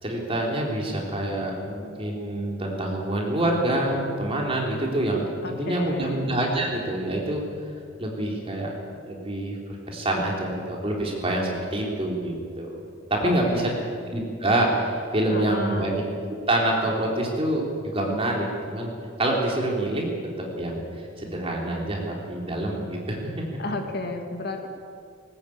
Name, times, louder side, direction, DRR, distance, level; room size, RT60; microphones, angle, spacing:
voice 1, 0.0-5.2 5.5-7.4 8.0-8.7 9.1-12.8 13.1-13.6 14.1-16.0 16.5-18.9 19.2-20.1 20.4-20.8 21.2-23.4, right 1 dB, 25° right, -1 dB, 3.9 m, -26 dB
voice 2, 5.4-6.2 13.2-13.9 15.3-15.9 23.6-24.7, left 2 dB, 50° left, 4 dB, 2.1 m, -33 dB
20.0 x 19.0 x 8.9 m, 2.3 s
head